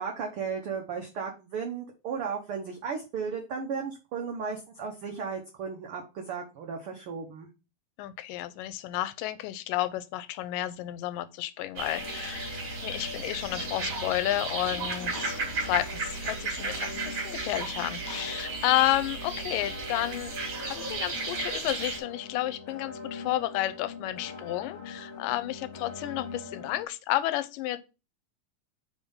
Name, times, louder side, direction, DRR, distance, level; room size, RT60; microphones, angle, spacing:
voice 1, 0.0-7.5, right 6 dB, 90° right, 1.2 m, -35 dB
voice 2, 8.0-20.3 20.6-27.8, left 15 dB, 85° left, 2.2 m, -31 dB
sound 1, 11.8-26.8, left 4 dB, 70° left, 2.3 m, -43 dB
sound 2, 11.8-22.0, right 4 dB, 40° right, 2.3 m, -35 dB
5.0 x 3.6 x 5.5 m
omnidirectional pair, 3.8 m